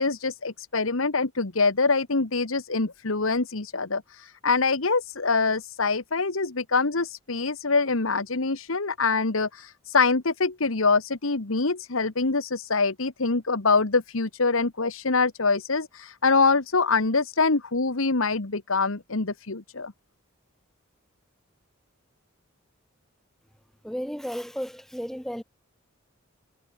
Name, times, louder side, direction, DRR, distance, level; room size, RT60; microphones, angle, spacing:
voice 1, 0.0-19.9, left 4 dB, 75° left, 1.5 m, -24 dB
voice 2, 23.8-25.4, equal, ahead, 2.7 m, -33 dB
head